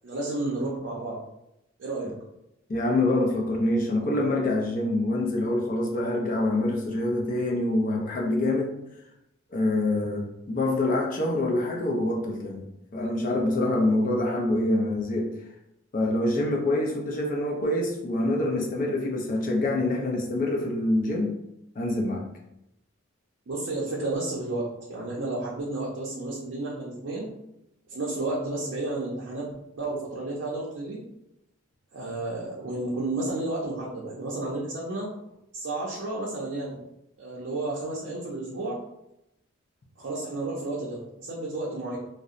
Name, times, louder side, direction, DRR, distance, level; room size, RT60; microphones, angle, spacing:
voice 1, 0.0-1.2 1.8-2.1 23.5-27.3 27.9-31.0 31.9-35.1 35.5-36.8 37.2-38.8 40.0-42.0, right 2 dB, 70° right, -5 dB, 0.5 m, -32 dB
voice 2, 2.7-8.7 9.5-12.7 12.9-15.3 15.9-21.3 21.8-22.2, left 1 dB, 40° left, 0 dB, 0.4 m, -25 dB
2.7 x 2.0 x 2.4 m, 0.84 s
head